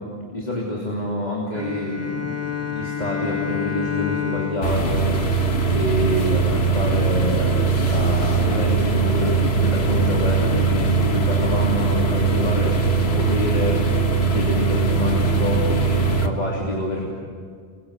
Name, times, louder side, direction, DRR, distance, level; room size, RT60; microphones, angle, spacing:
voice 1, 0.3-2.4 2.7-5.0 5.7-7.5 7.8-17.1, left 1 dB, 45° left, -2 dB, 3.3 m, -27 dB
Bowed string instrument, 1.5-6.2, left 7 dB, 15° left, 2.4 m, -29 dB
sound 1, 4.6-16.3, right 4 dB, 90° left, 1.9 m, -20 dB
29.5 x 22.5 x 6.7 m, 2.2 s
omnidirectional pair, 1.0 m